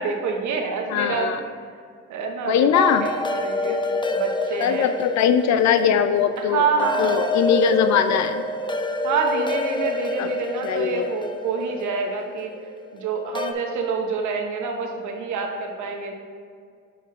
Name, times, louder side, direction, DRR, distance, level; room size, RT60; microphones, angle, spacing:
voice 1, 0.0-1.3 2.1-2.7 3.0-3.8 4.1-4.9 6.4-7.3 9.0-12.5 12.9-16.1, right 4 dB, 70° right, 3 dB, 0.9 m, -27 dB
voice 2, 0.9-1.4 2.5-3.1 4.6-6.7 7.0-8.4 10.2-10.3 10.6-11.1, left 7 dB, 65° left, 10 dB, 0.5 m, -20 dB
sound 1, 2.7-13.5, left 2 dB, 15° left, 0.5 m, -28 dB
5.8 x 5.4 x 3.7 m, 2.1 s
supercardioid pair, 55°, 30 cm